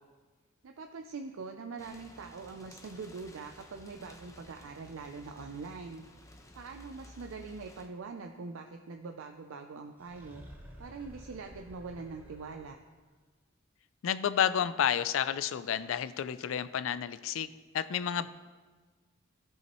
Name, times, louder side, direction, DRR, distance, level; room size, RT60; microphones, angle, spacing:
voice 1, 0.6-6.0 6.5-10.4 10.8-12.8 18.1-18.3, right 4 dB, 90° right, 4 dB, 0.5 m, -43 dB
sound 1, 1.8-7.9, left 1 dB, 15° left, 0.7 m, -54 dB
sound 2, 10.0-13.0, equal, 10° right, 0.9 m, -51 dB
voice 2, 14.0-17.5 17.7-18.3, left 9 dB, 75° left, 14 dB, 0.3 m, -30 dB
15.0 x 5.6 x 3.0 m, 1.4 s
head